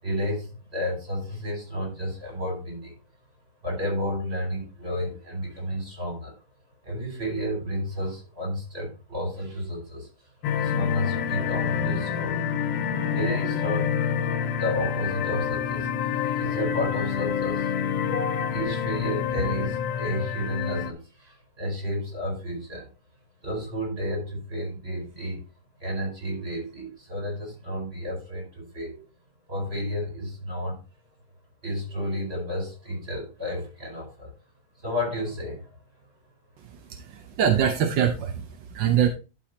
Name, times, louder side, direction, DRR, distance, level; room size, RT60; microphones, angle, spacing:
voice 1, 0.0-2.9 3.6-6.3 6.8-10.1 10.6-12.4 13.1-13.9 14.6-17.7 18.0-22.9 23.4-25.4 25.8-29.0 29.5-30.8 31.6-34.3 34.8-35.7, equal, 35° right, 0 dB, 5.0 m, -31 dB
sound 1, 10.4-20.9, left 8 dB, 90° left, 1.5 m, -27 dB
voice 2, 36.6-39.1, right 9 dB, 85° right, 5 dB, 1.5 m, -24 dB
11.5 x 4.8 x 4.1 m, 0.32 s
omnidirectional pair, 1.9 m